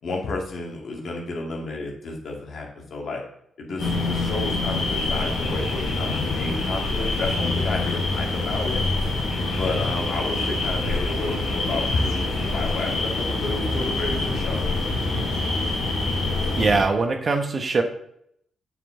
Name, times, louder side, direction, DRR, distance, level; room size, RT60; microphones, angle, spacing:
voice 1, 0.0-3.2 3.6-8.8 9.4-14.7, left 2 dB, 65° left, -1 dB, 2.0 m, -31 dB
sound 1, 3.8-16.8, left 2 dB, 80° left, 2.2 m, -25 dB
voice 2, 16.5-17.8, right 4 dB, 45° right, 5 dB, 1.1 m, -22 dB
8.1 x 5.0 x 3.8 m, 0.70 s
supercardioid pair, 50°, 0 cm